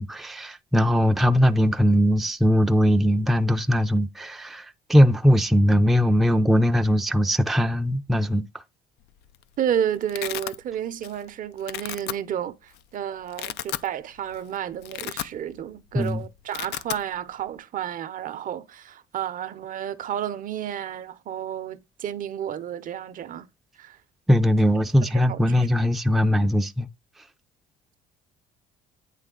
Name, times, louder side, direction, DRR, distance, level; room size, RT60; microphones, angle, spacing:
voice 1, 0.0-8.5 15.9-16.2 24.3-26.9, equal, ahead, 0.4 m, -20 dB
Domestic sounds home sounds, 9.1-9.4 9.7-10.6 11.0-11.3 11.6-12.1 12.8-12.9 13.2-13.9 14.3-14.4 14.7-15.7 15.9-16.1 16.4-17.0, left 13 dB, 80° left, 0.5 m, -33 dB
voice 2, 9.6-23.5 23.8-24.0 25.1-25.7, right 9 dB, 55° right, 0.6 m, -31 dB
9.1 x 3.2 x 3.7 m
cardioid pair, 110°, 17 cm